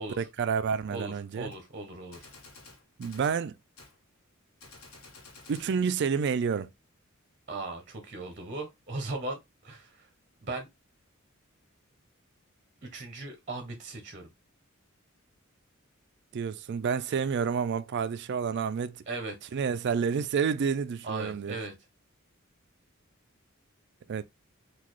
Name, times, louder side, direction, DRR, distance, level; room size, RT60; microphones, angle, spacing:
voice 1, 0.2-1.5 3.0-3.5 5.5-6.7 16.3-19.0 19.5-21.6 24.1-24.2, right 6 dB, 55° right, 0.3 m, -29 dB
voice 2, 0.9-2.3 7.5-10.1 10.4-10.7 12.8-14.3 19.1-19.5 21.0-21.7, right 2 dB, 35° right, 0.7 m, -38 dB
Gunshot gunfire, 1.5-1.6 2.1-3.4 3.8-4.0 4.6-5.7, left 3 dB, 80° left, 0.9 m, -51 dB
3.9 x 2.4 x 3.0 m
head